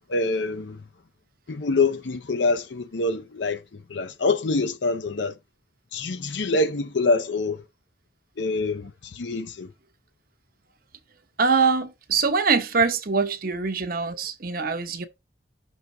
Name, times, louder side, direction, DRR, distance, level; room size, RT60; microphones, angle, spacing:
voice 1, 0.1-0.8 1.5-3.6 3.9-5.3 5.9-7.6 8.4-9.7, left 3 dB, 80° left, 0.6 m, -25 dB
voice 2, 11.4-15.1, right 5 dB, 50° right, 0.8 m, -23 dB
6.2 x 3.4 x 5.3 m
head